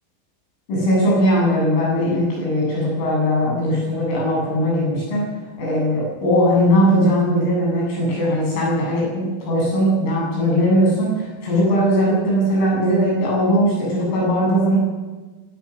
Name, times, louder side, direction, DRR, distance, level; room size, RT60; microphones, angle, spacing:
voice 1, 0.7-5.2 5.6-14.8, equal, 75° left, -4 dB, 10.5 m, -19 dB
24.5 x 17.5 x 6.3 m, 1.3 s
omnidirectional pair, 5.9 m